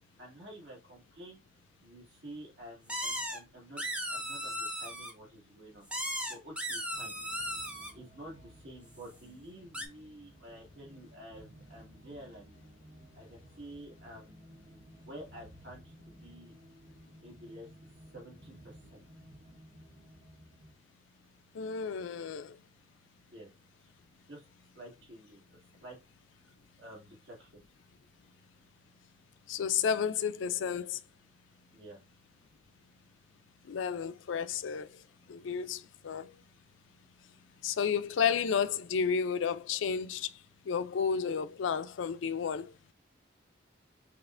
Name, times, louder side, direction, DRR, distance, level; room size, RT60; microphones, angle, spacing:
voice 1, 0.2-1.4 1.8-5.8 6.3-7.1 7.9-12.5 13.1-14.4 14.7-16.6 17.2-17.7 18.1-19.0 23.3-23.5 24.3-24.4 24.7-26.0 26.4-27.6 31.7-32.0, right 1 dB, 75° right, 1.9 m, -50 dB
sound 1, 2.9-3.4 3.8-5.1 5.9-7.9 9.7-9.9, equal, 5° right, 0.5 m, -36 dB
sound 2, 6.9-20.7, equal, 40° right, 0.7 m, -56 dB
voice 2, 21.5-22.6 29.5-31.0 33.7-34.9 35.3-36.3 37.6-40.3 40.7-42.7, left 6 dB, 85° left, 0.4 m, -32 dB
5.5 x 2.4 x 2.5 m
head